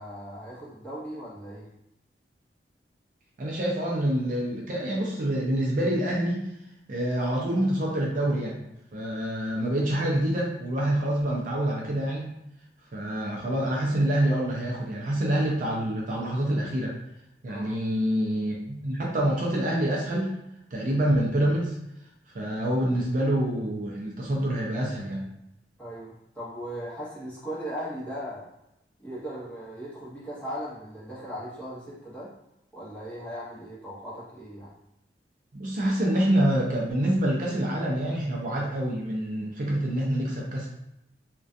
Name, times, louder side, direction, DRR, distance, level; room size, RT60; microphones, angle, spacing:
voice 1, 0.0-1.7 17.5-17.8 25.8-28.5 29.0-32.3 32.7-34.7, equal, 10° left, -9 dB, 0.8 m, -38 dB
voice 2, 3.4-6.5 6.9-8.6 8.9-12.4 12.9-16.9 17.4-20.3 20.7-21.8 22.3-25.2 35.5-40.7, right 1 dB, 50° right, -3 dB, 0.4 m, -26 dB
2.4 x 2.2 x 2.5 m, 0.83 s
head